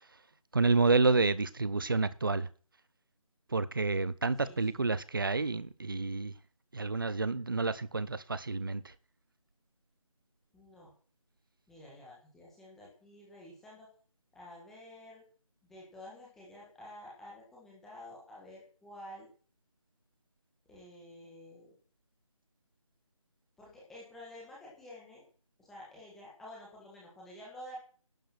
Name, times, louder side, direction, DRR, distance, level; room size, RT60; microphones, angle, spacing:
voice 1, 0.5-2.5 3.5-6.3 6.7-8.8, right 3 dB, 40° right, 0.8 m, -29 dB
voice 2, 4.4-4.8 10.5-10.9 11.7-13.9 14.3-15.2 15.7-19.3 20.6-21.7 23.6-25.2 25.6-27.8, left 1 dB, ahead, 1.6 m, -50 dB
12.0 x 8.4 x 6.0 m
figure-of-eight pair, 175°, 18 cm